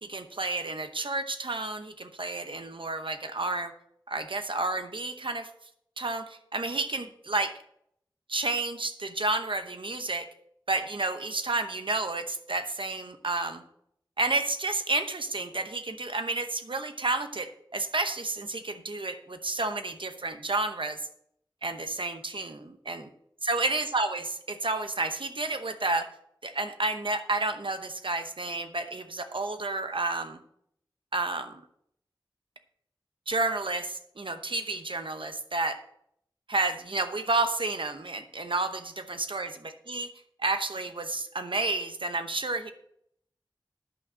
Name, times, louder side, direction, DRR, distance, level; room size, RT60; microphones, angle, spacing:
voice 1, 0.0-3.7 4.1-5.5 6.0-7.5 8.3-10.3 10.7-13.6 14.2-21.0 21.6-23.1 23.4-26.1 26.4-30.4 31.1-31.6 33.3-35.8 36.5-40.1 40.4-42.7, right 2 dB, 90° right, 8 dB, 0.8 m, -31 dB
11.0 x 6.1 x 6.4 m, 0.71 s
wide cardioid pair, 45°, 8 cm